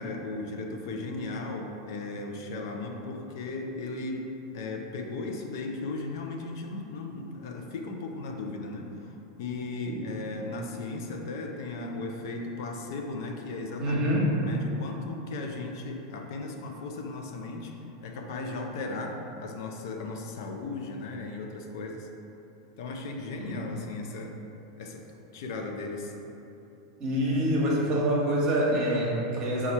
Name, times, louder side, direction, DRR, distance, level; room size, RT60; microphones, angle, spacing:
voice 1, 0.0-4.3 4.5-17.7 18.0-22.1 22.8-24.4 24.8-25.1 25.3-26.1, left 3 dB, 70° left, 2 dB, 0.5 m, -36 dB
voice 2, 13.8-14.3 23.3-23.7 27.0-29.7, equal, 35° right, -3 dB, 1.0 m, -26 dB
4.3 x 2.3 x 4.2 m, 2.9 s
supercardioid pair, 125°, 2 cm